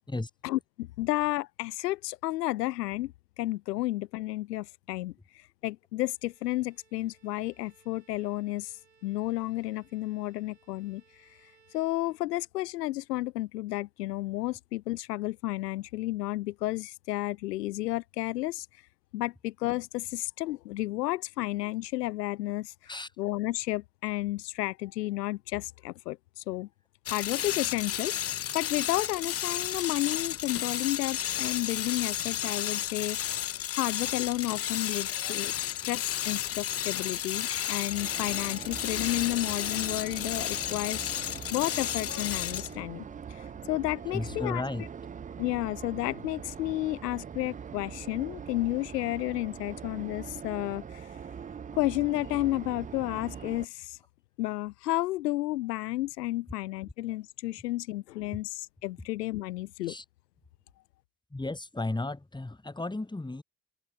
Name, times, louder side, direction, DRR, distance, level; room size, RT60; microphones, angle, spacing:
voice 1, 0.4-8.7 9.0-11.0 11.7-18.7 19.1-22.7 23.2-26.7 27.1-28.2 28.5-33.4 33.7-41.1 41.5-44.6 45.4-51.1 51.7-54.0 54.4-59.9, left 17 dB, 80° left, 0.6 m, -32 dB
Bowed string instrument, 6.0-12.8, right 6 dB, 85° right, 5.4 m, -65 dB
sound 1, 27.1-42.8, left 11 dB, 30° left, 0.7 m, -32 dB
sound 2, 37.9-53.6, right 7 dB, 15° right, 0.5 m, -42 dB
voice 2, 44.1-44.9 58.3-58.4 59.9-60.0 61.3-63.4, left 2 dB, 10° left, 2.0 m, -34 dB
open air
figure-of-eight pair, 50°, 48 cm